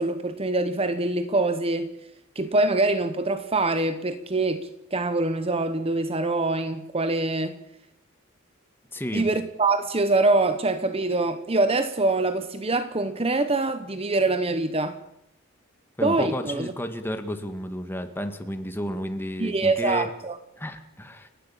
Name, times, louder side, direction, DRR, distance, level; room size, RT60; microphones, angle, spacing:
voice 1, 0.0-1.9 2.3-7.6 9.1-15.0 16.0-16.7 19.4-20.4, right 2 dB, 30° right, 1.0 m, -24 dB
voice 2, 8.9-9.3 16.0-20.1 20.6-21.3, equal, 10° left, 1.9 m, -32 dB
29.5 x 11.5 x 8.7 m
head